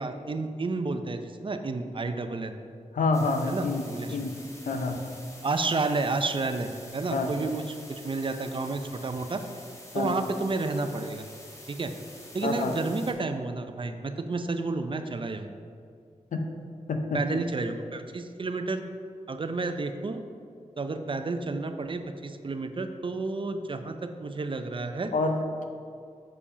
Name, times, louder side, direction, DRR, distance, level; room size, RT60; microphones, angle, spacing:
voice 1, 0.0-2.6 3.5-4.3 4.7-4.8 5.4-9.4 10.0-11.3 11.7-11.9 12.3-15.5 17.1-18.8 19.3-20.2 20.8-25.1, right 3 dB, 40° right, 8 dB, 0.5 m, -31 dB
voice 2, 2.9-4.4 4.6-5.1 7.1-7.3 9.9-10.2 12.4-12.8 16.3-16.5 16.9-17.4 25.1-25.6, left 3 dB, 90° left, 5 dB, 0.7 m, -28 dB
sound 1, 3.1-13.1, left 1 dB, 25° left, 1.5 m, -48 dB
7.0 x 4.9 x 5.0 m, 2.3 s
wide cardioid pair, 75°, 13 cm